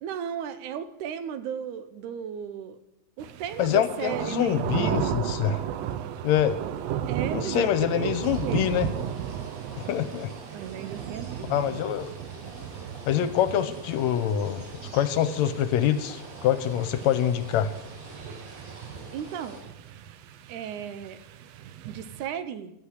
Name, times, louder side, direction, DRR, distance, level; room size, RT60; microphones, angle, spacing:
voice 1, 0.0-2.8 3.2-5.1 7.1-7.7 7.9-8.1 8.4-8.7 10.5-11.8 19.1-19.6 20.5-21.2 21.9-22.7, right 8 dB, 90° right, 13 dB, 2.3 m, -35 dB
sound 1, 3.2-22.3, right 9 dB, 75° right, 1.7 m, -35 dB
voice 2, 3.6-5.6 6.2-6.6 7.3-8.9 9.8-10.3 11.5-12.1 13.1-14.6 14.9-17.7, left 10 dB, 75° left, 12 dB, 1.9 m, -25 dB
sound 2, 8.1-19.6, right 1 dB, 55° right, 4.7 m, -47 dB
12.0 x 8.4 x 8.1 m, 0.84 s
omnidirectional pair, 3.4 m